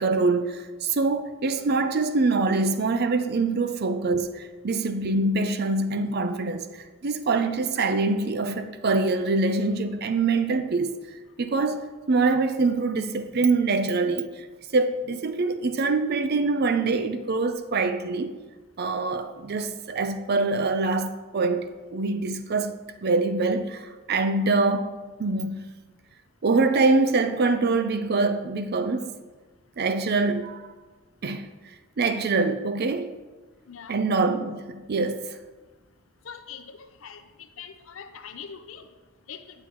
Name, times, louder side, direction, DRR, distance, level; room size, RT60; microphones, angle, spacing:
voice 1, 0.0-11.0 11.4-14.5 14.7-18.3 18.8-22.8 23.0-24.9 25.2-25.7 26.4-29.1 29.8-30.7 31.2-31.5 32.0-33.2 33.9-35.4, right 3 dB, 50° right, 0.5 m, -24 dB
voice 2, 36.2-38.9 39.3-39.4, left 7 dB, 80° left, 0.6 m, -42 dB
9.2 x 7.8 x 3.0 m
head